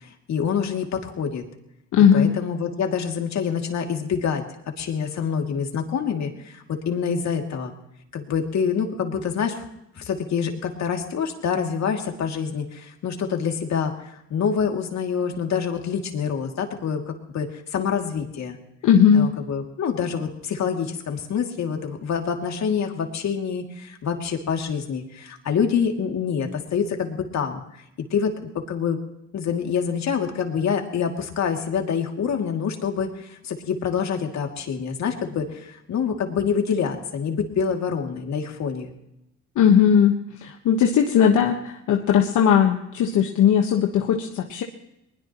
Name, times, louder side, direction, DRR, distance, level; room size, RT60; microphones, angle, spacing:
voice 1, 0.0-1.4 2.1-4.4 4.8-7.7 8.1-9.6 10.0-18.6 19.1-27.6 28.1-29.0 29.3-38.9, left 6 dB, 65° left, 3 dB, 2.6 m, -26 dB
voice 2, 1.9-2.3 18.8-19.3 39.5-44.6, left 8 dB, 80° left, 2 dB, 1.4 m, -18 dB
21.5 x 20.5 x 3.1 m, 0.85 s
cardioid pair, 90°, 30 cm